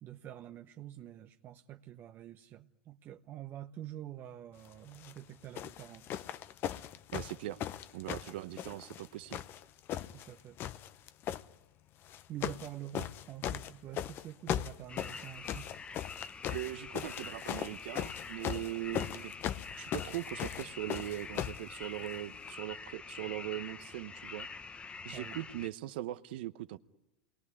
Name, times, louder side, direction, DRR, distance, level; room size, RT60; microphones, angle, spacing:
voice 1, 0.0-6.1 10.1-10.6 12.3-15.7 25.1-25.4, right 12 dB, 40° right, 0.9 m, -47 dB
sound 1, 4.9-5.2 5.6-9.1 9.3-10.3 10.6-11.4 12.1-12.7 12.9-21.6 22.5-22.6, left 11 dB, 40° left, 0.9 m, -38 dB
voice 2, 7.1-7.6 7.9-9.4 16.5-19.3 19.8-24.5 25.0-26.8, right 15 dB, 65° right, 0.9 m, -40 dB
sound 2, 14.9-25.7, left 5 dB, 20° left, 1.1 m, -46 dB
28.0 x 21.0 x 9.8 m
hypercardioid pair, 105°, 6 cm